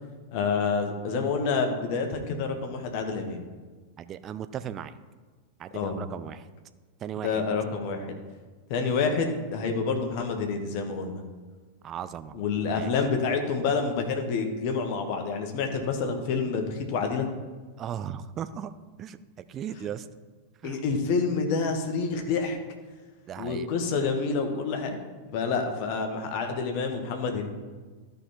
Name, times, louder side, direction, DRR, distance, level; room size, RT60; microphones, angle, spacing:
voice 1, 0.3-3.4 5.7-6.0 7.2-8.2 8.7-11.2 12.3-17.3 20.6-22.6 23.4-25.0 25.3-27.5, left 4 dB, 45° left, 5 dB, 1.5 m, -28 dB
voice 2, 4.0-4.9 5.6-6.4 7.0-7.3 11.8-12.4 12.7-12.9 17.8-18.7 19.0-19.2 19.5-20.0 20.6-20.8 23.3-23.7, right 9 dB, 30° right, 12 dB, 0.5 m, -36 dB
13.0 x 5.3 x 4.5 m, 1.4 s
figure-of-eight pair, 90°, 0 cm